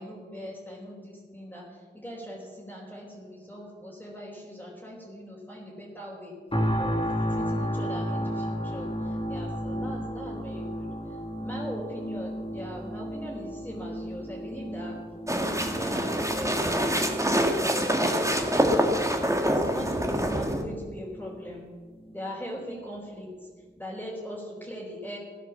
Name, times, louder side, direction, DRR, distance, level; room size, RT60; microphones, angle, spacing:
voice 1, 0.0-6.4 6.8-15.0 15.3-16.6 17.0-18.1 19.5-21.7 22.1-23.5 23.8-25.2, equal, 10° left, -6 dB, 4.6 m, -40 dB
sound 1, 6.5-21.5 22.0-22.2, equal, 30° left, 2.7 m, -34 dB
sound 2, 15.3-20.6, equal, 15° right, 2.0 m, -25 dB
16.5 x 10.5 x 7.4 m, 1.5 s
wide cardioid pair, 55°, 18 cm